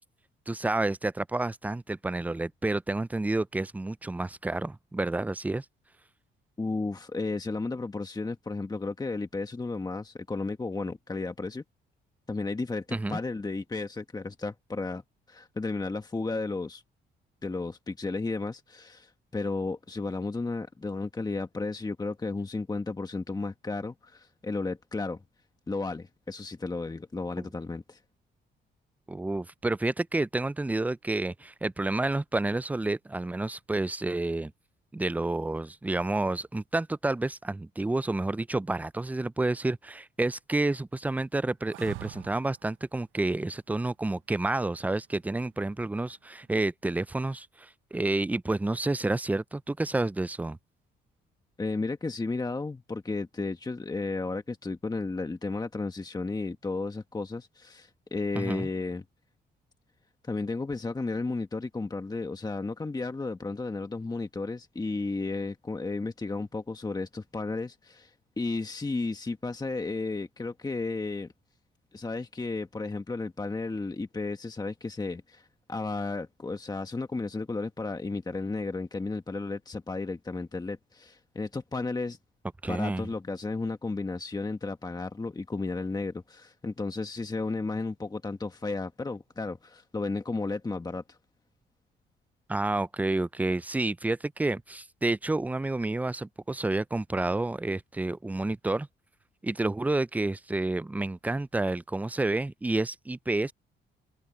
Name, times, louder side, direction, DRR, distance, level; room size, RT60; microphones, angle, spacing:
voice 1, 0.5-5.7 12.9-13.2 27.4-27.5 29.1-34.5 34.9-50.6 58.4-58.7 82.6-83.1 92.5-98.9 99.4-103.5, right 2 dB, 10° right, 0.4 m, -29 dB
voice 2, 6.6-11.6 12.3-15.0 15.3-16.8 17.4-25.2 25.7-28.0 51.6-59.0 60.2-71.3 71.9-82.2 82.7-91.2, left 3 dB, 20° left, 1.4 m, -33 dB
sound 1, 41.7-42.7 45.3-45.8, right 18 dB, 90° right, 0.7 m, -43 dB
cardioid pair, 90°, 20 cm